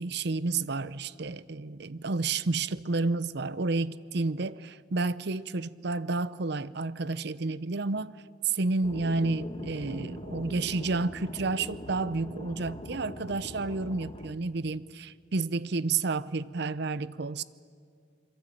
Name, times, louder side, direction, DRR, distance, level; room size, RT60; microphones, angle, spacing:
voice 1, 0.0-17.4, right 3 dB, 65° right, 0.7 m, -30 dB
sound 1, 8.8-14.3, left 1 dB, 30° left, 1.3 m, -41 dB
27.0 x 23.0 x 8.8 m
head